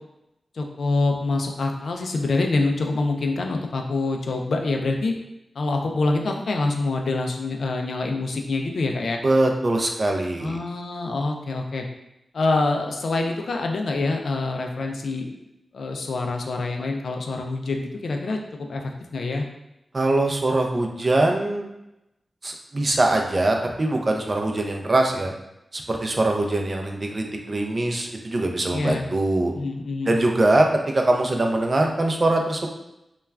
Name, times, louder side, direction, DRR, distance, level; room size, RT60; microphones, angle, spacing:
voice 1, 0.5-5.1 5.6-9.2 10.4-11.8 12.3-15.4 15.7-19.4 28.7-29.1 29.5-30.2, left 3 dB, 80° left, 2 dB, 0.3 m, -26 dB
voice 2, 9.2-10.6 19.9-21.7 22.4-25.3 25.7-29.5 30.1-32.7, right 2 dB, 40° right, 2 dB, 0.4 m, -22 dB
2.3 x 2.2 x 3.2 m, 0.87 s
wide cardioid pair, 90°, 0 cm